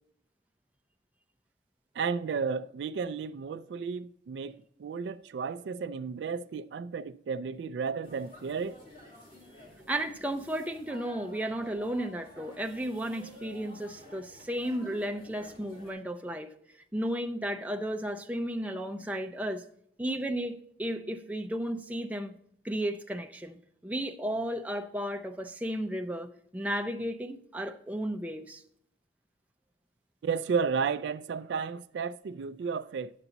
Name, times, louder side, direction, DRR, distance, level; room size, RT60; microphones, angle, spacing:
voice 1, 1.9-8.8 30.2-33.1, right 5 dB, 65° right, 0.3 m, -33 dB
sound 1, 8.0-15.9, left 1 dB, 30° left, 2.5 m, -51 dB
voice 2, 9.9-16.5 16.9-19.6 20.0-22.4 22.6-23.6 23.8-28.6, right 1 dB, 10° right, 0.5 m, -34 dB
9.9 x 7.0 x 3.9 m
head